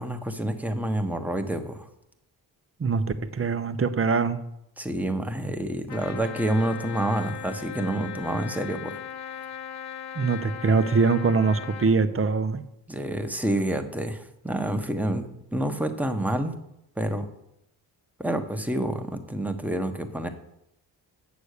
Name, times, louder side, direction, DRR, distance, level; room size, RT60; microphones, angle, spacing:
voice 1, 0.0-1.9 4.8-9.0 12.9-16.5 17.0-17.3 18.2-20.3, right 1 dB, 5° right, 5 dB, 1.2 m, -28 dB
voice 2, 2.8-4.4 10.1-12.6, right 4 dB, 30° right, 10 dB, 0.9 m, -23 dB
Trumpet, 5.9-11.9, left 9 dB, 60° left, 1.7 m, -38 dB
8.4 x 6.9 x 6.7 m, 0.82 s
cardioid pair, 75°, 44 cm